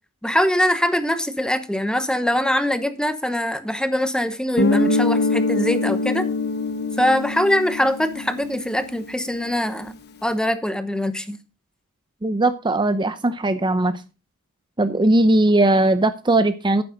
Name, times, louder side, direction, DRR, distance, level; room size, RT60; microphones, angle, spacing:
voice 1, 0.2-6.3 7.0-10.0 10.2-11.4, equal, 5° left, 11 dB, 0.9 m, -22 dB
Guitar, 4.6-9.1, left 3 dB, 50° left, 1.1 m, -23 dB
voice 2, 12.2-14.0 14.8-16.8, right 2 dB, 20° right, 11 dB, 0.6 m, -19 dB
11.5 x 9.2 x 3.9 m, 0.32 s
head